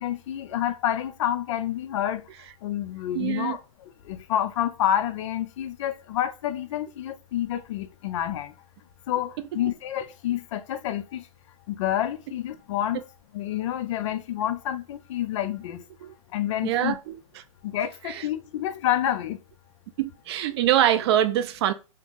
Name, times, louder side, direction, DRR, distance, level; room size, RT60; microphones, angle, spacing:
voice 1, 0.0-2.2 2.6-3.6 4.1-8.5 9.1-11.2 11.7-13.0 13.3-15.8 16.3-17.0 17.6-19.4, left 11 dB, 55° left, 0.4 m, -28 dB
voice 2, 3.1-3.6 16.0-16.1 16.6-17.2 18.0-18.2 20.0-21.7, right 11 dB, 45° right, 0.4 m, -24 dB
2.8 x 2.6 x 3.5 m
hypercardioid pair, 145°, 19 cm